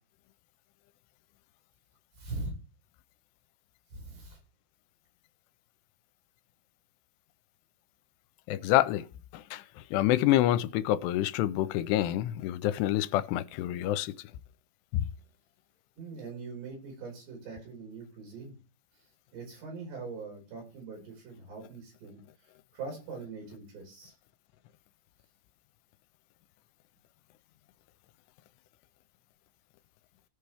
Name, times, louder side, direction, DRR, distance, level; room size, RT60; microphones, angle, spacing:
voice 1, 2.1-2.5 3.9-4.4 16.0-18.6 19.3-22.2 22.7-24.1, right 4 dB, 80° right, 7.2 m, -42 dB
voice 2, 8.5-9.1 9.3-14.3 14.9-15.1, left 14 dB, 85° left, 2.6 m, -27 dB
17.0 x 5.7 x 3.4 m
omnidirectional pair, 4.9 m